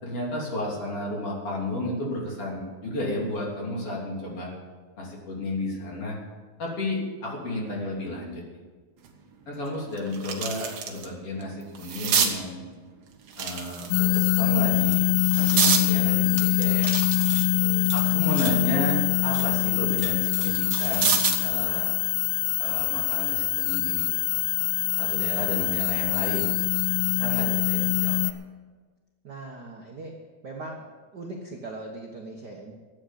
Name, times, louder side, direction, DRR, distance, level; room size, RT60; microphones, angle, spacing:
voice 1, 0.0-4.5 5.0-6.2 6.6-8.4 9.5-12.7 13.4-15.1 15.4-16.9 17.9-21.9 22.6-24.1 25.0-26.5 27.1-28.3, left 1 dB, 40° left, -3 dB, 4.0 m, -32 dB
sound 1, 9.0-9.1 9.6-11.1 11.4-12.3 13.3-14.2 14.8-15.9 16.4-18.6 19.0-21.5 22.9-23.1, right 7 dB, 55° right, 2.2 m, -28 dB
sound 2, 13.9-28.3, left 18 dB, 80° left, 2.2 m, -24 dB
voice 2, 17.5-17.9 29.2-30.2 30.4-30.9 31.1-32.7, right 2 dB, 75° right, 0 dB, 0.9 m, -40 dB
14.0 x 9.0 x 8.4 m, 1.4 s
omnidirectional pair, 4.1 m